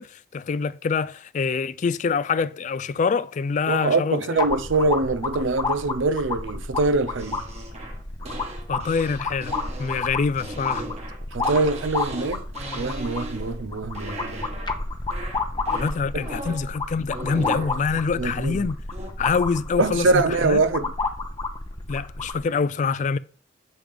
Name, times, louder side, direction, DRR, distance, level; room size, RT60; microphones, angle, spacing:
voice 1, 0.0-4.4 8.7-10.9 15.7-18.8 19.2-20.6 21.9-23.2, left 5 dB, 40° left, 0.3 m, -25 dB
voice 2, 3.7-7.4 11.3-12.4 12.7-14.5 18.2-18.6 19.8-20.9, right 3 dB, 75° right, 0.6 m, -23 dB
sound 1, 4.4-22.4, left 3 dB, 25° left, 0.7 m, -31 dB
sound 2, 7.2-13.7 13.9-14.8 15.1-16.7 17.1-17.8 18.9-19.1, right 1 dB, 35° right, 1.3 m, -37 dB
7.4 x 3.5 x 5.0 m
head